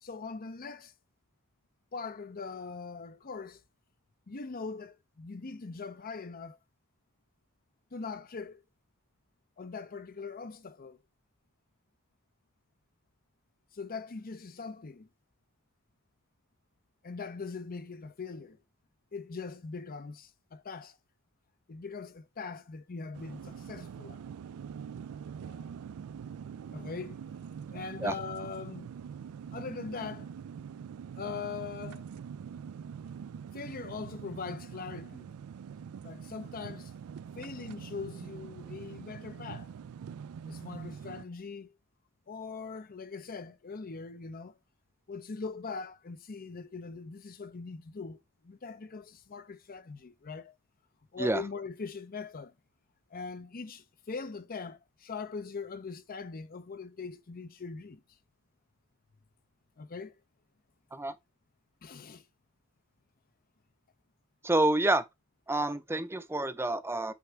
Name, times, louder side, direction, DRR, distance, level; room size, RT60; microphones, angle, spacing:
voice 1, 0.0-0.9 1.9-3.6 4.3-6.6 7.9-8.6 9.6-11.0 13.7-15.1 17.0-18.6 19.1-21.0 21.7-24.2 25.4-25.7 26.7-27.2 27.7-29.0 29.5-30.3 31.2-32.1 33.5-35.3 36.0-36.9 37.4-39.7 40.5-41.7 42.3-44.6 45.1-48.2 48.4-50.5 51.1-52.5 53.1-58.0 59.8-60.1 61.8-62.3, left 4 dB, 40° left, 0.6 m, -41 dB
sound 1, 23.1-41.3, right 7 dB, 75° right, 0.3 m, -44 dB
voice 2, 64.4-65.1 65.5-67.1, right 2 dB, 10° right, 0.6 m, -28 dB
8.3 x 3.5 x 4.5 m
head